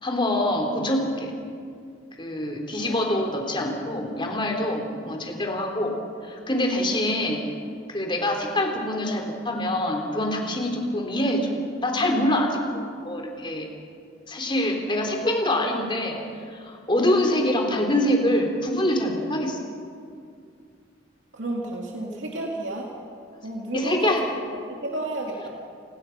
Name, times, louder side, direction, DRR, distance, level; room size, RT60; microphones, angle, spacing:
voice 1, 0.0-1.3 2.2-5.9 6.2-7.4 7.9-13.7 14.3-16.2 16.5-19.6 23.7-24.2, left 1 dB, 25° left, 2 dB, 3.3 m, -25 dB
voice 2, 21.3-22.9 23.4-24.2 24.7-25.5, right 1 dB, 70° right, -1 dB, 2.7 m, -31 dB
29.0 x 21.0 x 5.9 m, 2.3 s
head